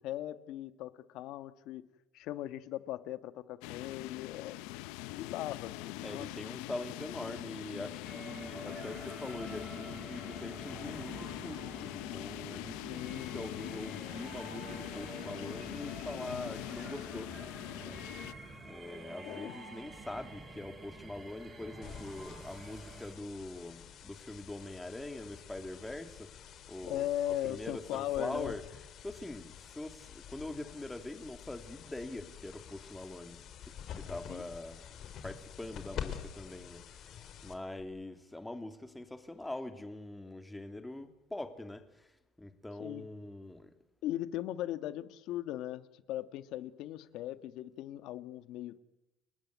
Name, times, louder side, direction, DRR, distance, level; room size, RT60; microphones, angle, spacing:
voice 1, 0.0-1.8 2.1-4.6 5.1-6.3 12.9-13.4 19.2-19.6 26.8-28.5 34.3-34.5 42.8-43.1 44.0-48.8, left 13 dB, 65° left, 1.6 m, -38 dB
sound 1, 3.6-18.3, left 18 dB, 85° left, 1.0 m, -43 dB
voice 2, 6.0-17.3 17.8-18.1 18.6-26.3 26.7-28.6 29.0-34.9 35.2-37.0 37.4-42.1 42.4-43.7, left 2 dB, 10° left, 2.8 m, -43 dB
sound 2, 8.0-23.1, right 2 dB, 25° right, 6.7 m, -48 dB
sound 3, 21.8-37.8, left 9 dB, 50° left, 4.2 m, -48 dB
30.0 x 19.5 x 9.5 m
cardioid pair, 120°, 0 cm